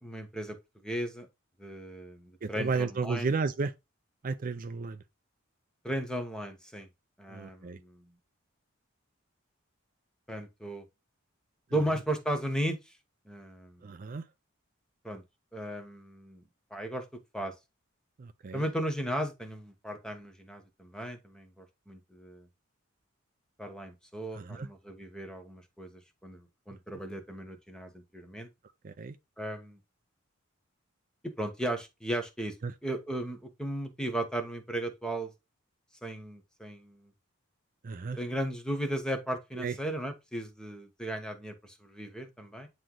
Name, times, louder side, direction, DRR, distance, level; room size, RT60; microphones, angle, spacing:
voice 1, 0.0-0.6 0.8-1.3 1.6-3.3 5.8-6.9 7.2-8.1 10.3-10.8 11.7-12.9 13.2-13.9 15.0-15.2 15.5-16.4 16.7-17.0 17.3-17.5 18.5-22.5 23.6-28.5 29.4-29.8 31.2-32.6 32.8-35.3 36.0-37.1 38.2-42.7, right 1 dB, 5° left, 1.0 m, -36 dB
voice 2, 2.4-3.7 4.2-5.0 7.3-7.8 13.8-14.2 18.2-18.6 24.3-24.7 28.8-29.2 32.6-32.7 37.8-38.2 39.6-39.8, right 4 dB, 40° right, 0.4 m, -33 dB
8.8 x 3.1 x 3.7 m
head